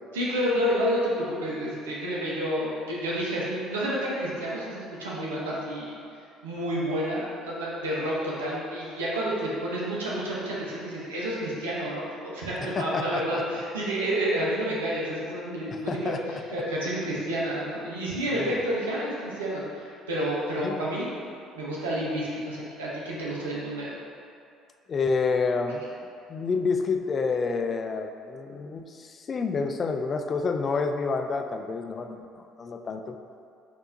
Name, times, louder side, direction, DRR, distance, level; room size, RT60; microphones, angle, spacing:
voice 1, 0.1-5.9 6.4-21.1 21.5-23.9, equal, 90° right, -6 dB, 0.8 m, -30 dB
voice 2, 12.6-13.6 15.9-16.2 18.3-18.6 20.6-20.8 24.9-25.8 26.3-33.2, left 4 dB, 40° left, 6 dB, 0.3 m, -29 dB
5.6 x 2.7 x 2.6 m, 2.4 s
hypercardioid pair, 60°, 0 cm